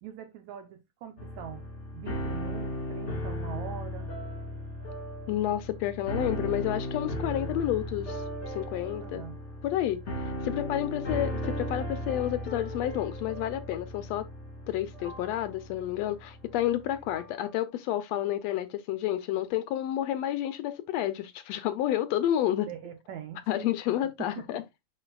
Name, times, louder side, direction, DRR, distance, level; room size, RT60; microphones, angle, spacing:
voice 1, 0.0-1.6 1.9-4.1 9.0-9.4 22.7-23.7 24.2-24.5, right 9 dB, 70° right, 2.0 m, -42 dB
sound 1, 1.2-17.4, equal, 30° left, 1.5 m, -36 dB
voice 2, 5.3-9.2 9.6-10.0 10.4-14.3 14.7-22.7 23.5-24.6, left 12 dB, 80° left, 1.5 m, -30 dB
10.5 x 5.1 x 2.3 m
omnidirectional pair, 3.5 m